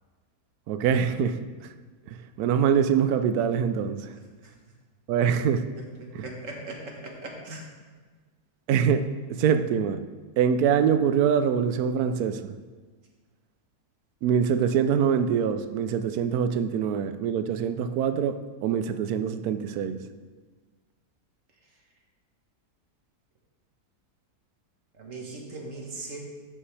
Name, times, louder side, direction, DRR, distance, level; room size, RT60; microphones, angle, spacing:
voice 1, 0.7-1.4 2.1-4.1 5.1-5.7 6.1-6.2 8.7-10.0 10.4-12.5 14.2-18.4 18.6-20.0, right 7 dB, 75° right, 9 dB, 1.0 m, -24 dB
voice 2, 4.1-4.5 5.8-7.6 24.9-26.2, right 2 dB, 55° right, 0 dB, 1.5 m, -39 dB
13.0 x 5.5 x 3.3 m, 1.5 s
omnidirectional pair, 1.7 m